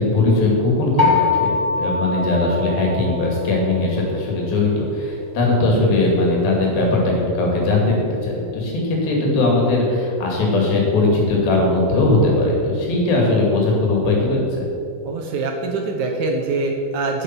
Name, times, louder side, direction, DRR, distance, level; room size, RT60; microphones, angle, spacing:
voice 1, 0.0-14.7, left 2 dB, 90° left, -2 dB, 4.1 m, -19 dB
sound 1, 1.0-3.8, left 4 dB, 35° left, 1.0 m, -22 dB
voice 2, 15.0-17.2, right 3 dB, 70° right, 2 dB, 2.0 m, -24 dB
9.0 x 8.6 x 6.0 m, 2.5 s
omnidirectional pair, 4.1 m